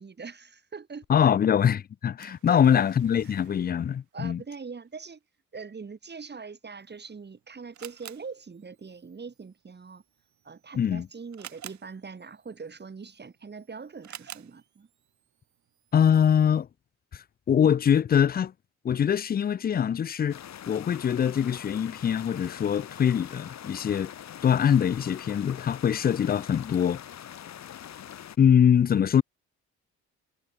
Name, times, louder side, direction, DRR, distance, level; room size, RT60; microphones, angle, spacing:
voice 1, 0.0-1.0 2.5-2.8 3.2-3.3 4.1-5.2 5.5-10.0 10.4-14.9, right 5 dB, 35° right, 6.2 m, -42 dB
voice 2, 1.1-4.4 10.7-11.1 15.9-16.7 17.5-18.5 18.8-20.4 20.7-24.1 24.4-27.0 28.4-29.2, left 8 dB, 30° left, 0.5 m, -23 dB
Splash splatter, 2.2-4.0 5.0-5.1, right 15 dB, 85° right, 4.1 m, -58 dB
Camera, 6.8-16.7, right 11 dB, 70° right, 4.6 m, -51 dB
sound 1, 20.3-28.4, left 10 dB, 60° left, 3.0 m, -43 dB
cardioid pair, 90°, 30 cm